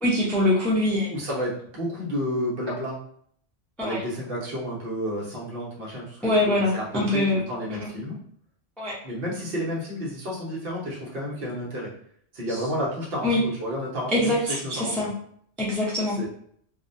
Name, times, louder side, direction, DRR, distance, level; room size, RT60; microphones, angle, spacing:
voice 1, 0.0-1.1 3.8-4.0 6.2-7.4 7.8-7.9 8.8-8.9 13.2-13.4 14.1-15.1 15.6-16.2, left 1 dB, ahead, -5 dB, 0.4 m, -23 dB
voice 2, 1.1-3.0 3.8-8.2 9.0-11.9 12.3-15.1 16.1-16.3, equal, 55° right, -5 dB, 1.0 m, -31 dB
2.6 x 2.1 x 2.5 m, 0.63 s
omnidirectional pair, 1.2 m